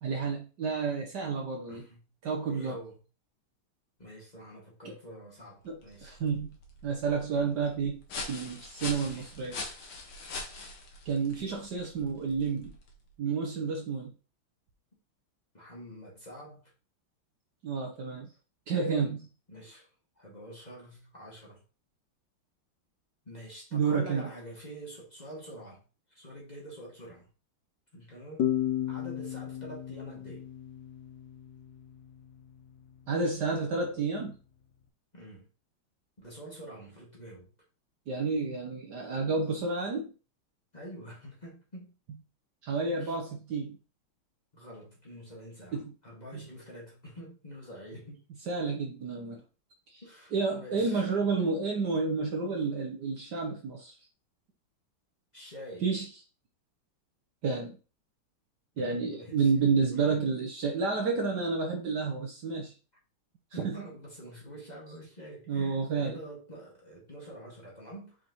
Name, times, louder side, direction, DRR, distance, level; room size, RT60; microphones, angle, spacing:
voice 1, 0.0-1.8 2.2-2.8 4.8-5.0 5.6-6.5 6.8-8.0 8.3-9.6 11.0-12.8 13.2-14.1 17.6-18.3 18.7-19.3 23.7-24.3 33.1-34.4 38.1-40.1 42.6-43.8 45.7-45.9 46.3-46.5 48.5-49.4 49.9-50.0 50.3-53.9 55.8-56.1 57.4-57.8 58.8-62.7 63.5-63.8 65.5-66.2, right 4 dB, 60° right, 1.4 m, -30 dB
voice 2, 1.7-2.0 2.5-3.0 4.0-6.1 9.0-9.3 15.5-16.7 19.5-19.9 20.2-21.6 23.3-25.8 26.1-27.3 27.9-28.5 28.9-30.5 35.1-35.5 36.2-37.5 40.7-41.9 43.0-43.2 44.5-48.2 50.0-51.1 55.3-55.9 58.8-59.7 60.0-60.2 63.5-68.2, equal, 20° left, 1.9 m, -46 dB
sound 1, 5.7-13.1, left 3 dB, 80° left, 2.2 m, -43 dB
sound 2, 28.4-31.8, left 11 dB, 65° left, 1.1 m, -33 dB
5.9 x 5.1 x 3.1 m
omnidirectional pair, 2.3 m